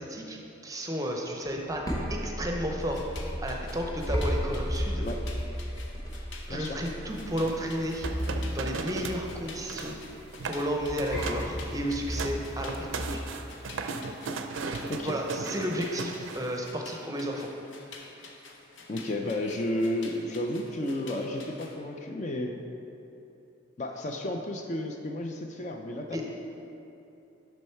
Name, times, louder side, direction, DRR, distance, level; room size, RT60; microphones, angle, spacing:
voice 1, 0.0-3.0 3.4-5.1 6.5-8.1 8.5-10.0 10.4-13.2 15.0-17.5 26.1-26.2, equal, 15° right, 1 dB, 0.6 m, -33 dB
sound 1, 1.5-13.3, equal, 15° left, 0.9 m, -34 dB
sound 2, 2.8-21.8, left 3 dB, 65° left, 0.8 m, -49 dB
sound 3, 7.4-9.2 9.5-10.0 10.3-10.7 11.0-11.5 11.9-16.6, right 4 dB, 75° right, 0.5 m, -36 dB
voice 2, 18.9-22.6 23.8-26.2, left 1 dB, 35° left, 3 dB, 0.4 m, -32 dB
6.6 x 6.2 x 4.4 m, 2.9 s
head